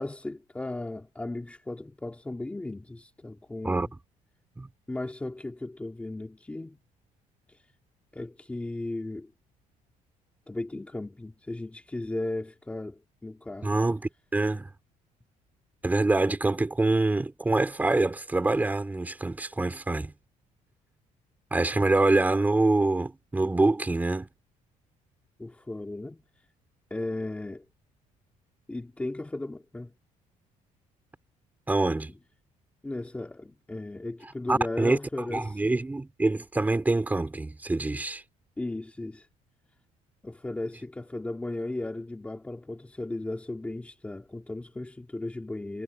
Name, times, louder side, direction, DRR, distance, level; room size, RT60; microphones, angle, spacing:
voice 1, 0.0-3.9 4.9-6.8 7.5-7.6 8.1-9.3 10.5-13.8 25.4-26.2 26.9-27.7 28.7-29.9 32.1-32.2 32.8-35.6 38.6-39.3 40.2-45.8, left 2 dB, 10° left, 2.4 m, -36 dB
voice 2, 13.6-14.7 15.8-20.1 21.5-24.3 31.7-32.1 34.5-35.0 35.3-38.2, right 2 dB, 10° right, 4.1 m, -25 dB
cardioid pair, 150°, 14 cm